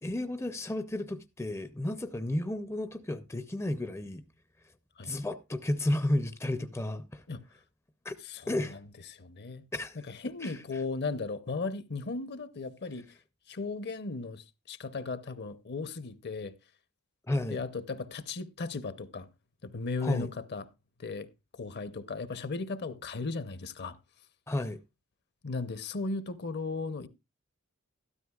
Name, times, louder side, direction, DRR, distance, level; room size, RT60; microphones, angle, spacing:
voice 1, 0.0-4.2 5.0-7.2 8.0-8.1 8.5-8.8 9.7-10.0 10.4-10.6 17.3-17.6 20.0-20.3 24.5-24.8, left 1 dB, 10° left, 0.5 m, -32 dB
voice 2, 8.2-8.8 9.1-9.6 10.1-13.2 13.5-16.5 17.5-19.3 19.6-20.6 21.0-24.0 25.4-27.1, left 3 dB, 50° left, 0.7 m, -36 dB
13.0 x 12.5 x 2.3 m
head